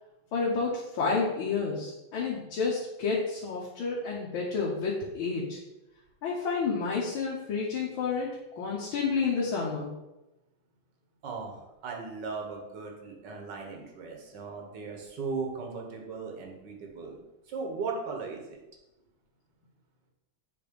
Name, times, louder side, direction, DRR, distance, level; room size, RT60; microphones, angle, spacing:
voice 1, 0.3-5.6 6.2-8.3 8.6-9.9, left 4 dB, 80° left, -5 dB, 1.8 m, -30 dB
voice 2, 11.2-17.2 17.5-18.6, right 4 dB, 60° right, 1 dB, 1.7 m, -37 dB
7.6 x 3.4 x 5.1 m, 0.98 s
omnidirectional pair, 2.2 m